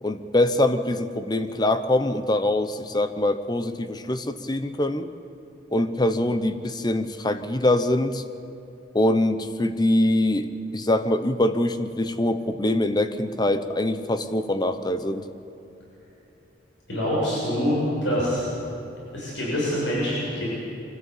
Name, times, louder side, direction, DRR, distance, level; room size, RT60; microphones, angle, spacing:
voice 1, 0.0-5.1 5.7-8.2 8.9-10.5 10.7-15.3, left 1 dB, 20° left, 10 dB, 0.9 m, -23 dB
voice 2, 16.9-18.5 19.1-20.4, equal, 75° left, -6 dB, 7.2 m, -25 dB
24.0 x 15.5 x 8.6 m, 2.9 s
head